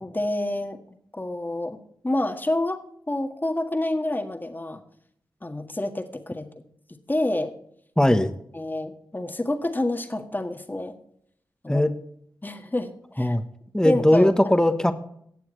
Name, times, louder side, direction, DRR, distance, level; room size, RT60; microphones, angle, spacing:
voice 1, 0.0-1.8 2.0-2.8 3.1-4.8 5.4-6.6 7.1-7.5 8.5-10.9 11.6-11.9 12.4-13.3 13.8-14.3, left 1 dB, 25° left, 5 dB, 1.7 m, -28 dB
voice 2, 8.0-8.3 11.7-11.9 13.2-13.4 13.7-14.9, left 1 dB, 10° left, 9 dB, 1.2 m, -19 dB
18.0 x 7.0 x 3.2 m, 0.68 s
cardioid pair, 55°, 8 cm